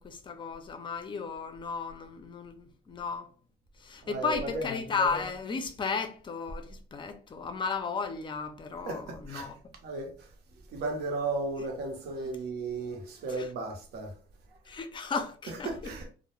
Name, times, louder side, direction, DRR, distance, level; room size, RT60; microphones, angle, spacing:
voice 1, 0.0-3.3 3.8-9.6 13.3-13.5 14.7-15.9, left 5 dB, 30° left, 0.4 m, -34 dB
voice 2, 4.0-4.7 8.9-9.5 9.8-10.1 10.7-14.1 15.5-16.1, right 3 dB, 70° right, 0.8 m, -35 dB
2.2 x 2.0 x 3.0 m
cardioid pair, 110°, 17 cm